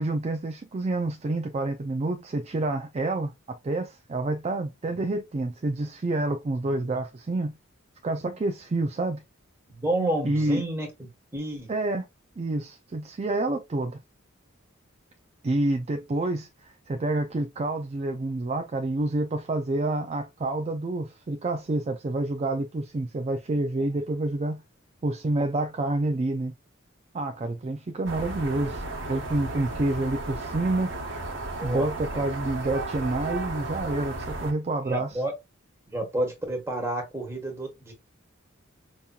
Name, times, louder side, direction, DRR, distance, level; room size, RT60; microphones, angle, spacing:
voice 1, 0.0-7.6 8.0-9.2 10.2-10.6 11.7-12.1 12.4-14.0 15.4-24.6 25.0-26.5 27.1-28.8 29.1-30.9 31.6-35.1, right 2 dB, 30° right, 0.4 m, -28 dB
voice 2, 6.6-7.0 9.7-11.7 31.6-31.9 32.1-32.2 34.9-35.3 35.9-37.9, right 1 dB, 15° right, 1.4 m, -30 dB
sound 1, 28.0-34.5, right 2 dB, 65° right, 1.3 m, -34 dB
5.3 x 2.8 x 2.4 m
head